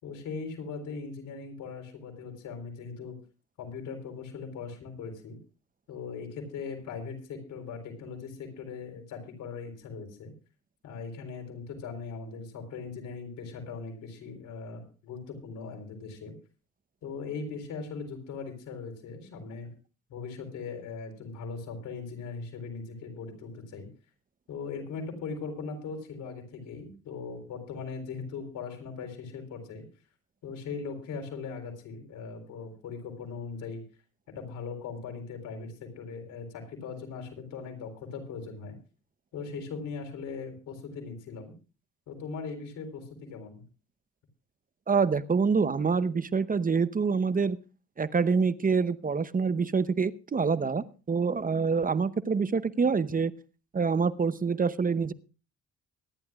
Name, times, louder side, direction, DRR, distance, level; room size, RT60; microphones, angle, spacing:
voice 1, 0.0-3.2 3.6-5.4 5.9-10.3 10.8-16.3 17.0-19.7 20.1-23.9 24.5-29.8 30.4-33.8 34.3-38.8 39.3-41.5 42.1-43.6, left 5 dB, 85° left, 4 dB, 4.1 m, -39 dB
voice 2, 44.9-47.6 48.0-53.3 53.7-55.1, right 5 dB, 30° right, 14 dB, 0.8 m, -26 dB
23.5 x 11.0 x 2.4 m, 0.34 s
cardioid pair, 90°, 30 cm